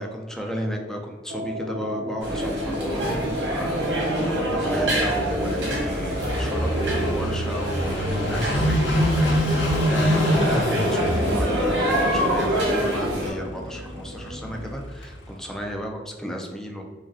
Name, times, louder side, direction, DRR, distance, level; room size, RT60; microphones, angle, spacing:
voice 1, 0.0-16.8, equal, 5° left, 1 dB, 0.3 m, -34 dB
sound 1, 1.3-14.7, equal, 60° right, 0.7 m, -37 dB
sound 2, 2.2-13.3, equal, 75° right, 1.2 m, -25 dB
Car passing by / Idling, 4.8-15.4, equal, 85° left, 0.6 m, -27 dB
4.6 x 2.1 x 2.7 m, 1.5 s
head